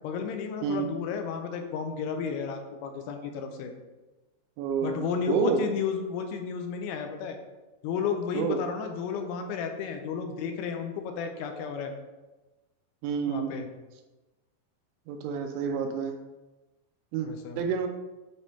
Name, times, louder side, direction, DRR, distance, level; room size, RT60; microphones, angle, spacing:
voice 1, 0.0-3.7 4.8-7.4 7.8-11.9 13.3-13.7 17.2-17.6, left 6 dB, 90° left, 5 dB, 3.1 m, -33 dB
voice 2, 4.6-5.7 8.3-8.6 13.0-13.6 15.1-16.2 17.1-17.3 17.6-17.9, right 6 dB, 80° right, 4 dB, 2.7 m, -29 dB
8.8 x 3.5 x 4.1 m, 1.1 s
omnidirectional pair, 5.4 m